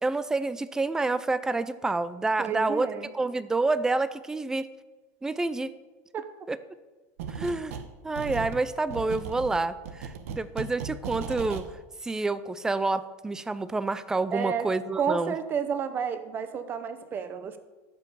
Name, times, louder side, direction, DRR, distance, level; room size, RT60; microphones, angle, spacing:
voice 1, 0.0-2.9 3.1-4.7 5.2-5.7 6.5-6.6 7.3-7.8 8.0-11.7 12.0-15.3, right 3 dB, 10° right, 15 dB, 0.5 m, -28 dB
voice 2, 2.4-3.1 6.1-6.2 14.3-14.7 15.0-17.6, right 7 dB, 25° right, 10 dB, 0.8 m, -31 dB
sound 1, 7.2-7.9 8.2-11.7, right 6 dB, 80° right, 1.1 m, -37 dB
14.0 x 5.9 x 6.9 m, 1.2 s
supercardioid pair, 150°, 8 cm